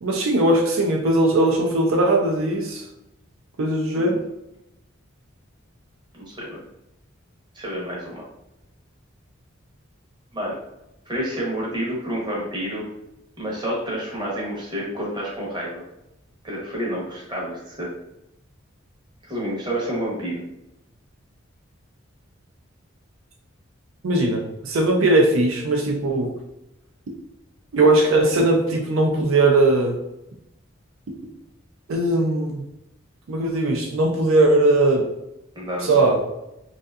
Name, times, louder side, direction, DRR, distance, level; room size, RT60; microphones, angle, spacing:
voice 1, 0.0-2.8 3.6-4.2 24.0-26.3 27.7-30.0 31.9-32.6 33.3-35.1 35.8-36.2, right 2 dB, 80° right, 1 dB, 0.4 m, -19 dB
voice 2, 6.1-6.6 7.5-8.2 10.3-10.5 11.1-12.9 13.4-15.8 16.4-17.9 19.2-20.4 35.5-36.1, equal, 20° right, -5 dB, 0.7 m, -29 dB
2.6 x 2.4 x 2.3 m, 0.87 s
head